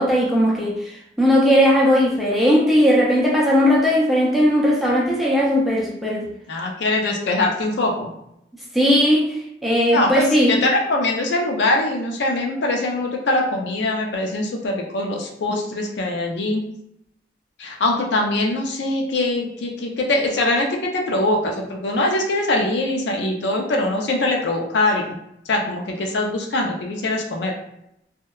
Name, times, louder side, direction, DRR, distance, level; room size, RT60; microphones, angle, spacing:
voice 1, 0.0-6.3 8.7-9.3 9.6-10.6, equal, ahead, -4 dB, 0.4 m, -17 dB
voice 2, 6.5-8.1 9.9-16.6 17.6-25.0 25.5-27.6, left 2 dB, 75° left, 1 dB, 0.5 m, -22 dB
2.7 x 2.1 x 2.3 m, 0.79 s
head